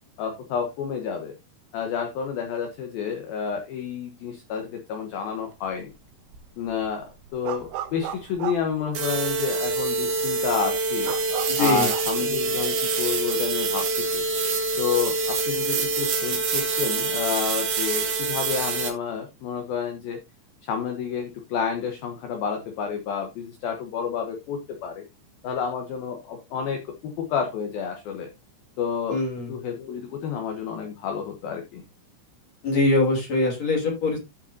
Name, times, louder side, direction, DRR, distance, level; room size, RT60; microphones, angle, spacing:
voice 1, 0.2-1.4 1.7-5.9 6.6-11.1 11.6-14.2 14.8-20.2 20.6-25.0 25.4-28.3 28.8-29.2 29.5-31.8, left 7 dB, 70° left, 4 dB, 2.6 m, -30 dB
sound 1, 5.6-6.0 6.3-9.5 9.9-10.0 10.3-12.1, right 11 dB, 80° right, 3.2 m, -35 dB
sound 2, 8.9-18.9, right 3 dB, 55° right, 2.4 m, -26 dB
voice 2, 11.5-11.9 29.1-29.5 32.6-34.2, left 2 dB, 40° left, 0 dB, 3.8 m, -23 dB
14.0 x 5.6 x 2.7 m, 0.22 s
omnidirectional pair, 5.2 m